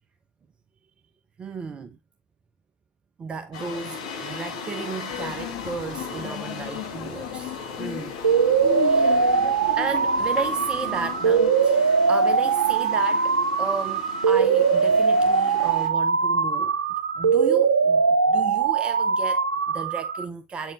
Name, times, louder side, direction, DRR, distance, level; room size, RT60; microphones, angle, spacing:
voice 1, 1.4-2.0 3.2-8.2 8.8-9.5 9.8-16.8 17.2-20.7, right 5 dB, 25° right, 0.6 m, -34 dB
sound 1, 3.5-15.9, left 5 dB, 60° left, 1.9 m, -37 dB
sound 2, 5.1-11.5, left 15 dB, 45° left, 0.6 m, -36 dB
sound 3, 8.2-20.2, right 5 dB, 80° right, 0.6 m, -21 dB
8.5 x 4.5 x 2.8 m
figure-of-eight pair, 85°, 5 cm